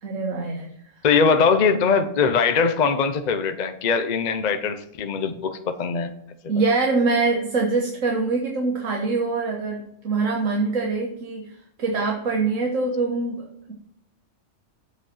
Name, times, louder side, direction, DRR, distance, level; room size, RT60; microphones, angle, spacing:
voice 1, 0.0-0.7 6.5-11.5 11.8-13.7, right 3 dB, 85° right, 0 dB, 1.6 m, -24 dB
voice 2, 1.0-6.1, left 5 dB, 40° left, 8 dB, 0.7 m, -21 dB
8.0 x 5.1 x 5.6 m, 0.71 s
omnidirectional pair, 1.3 m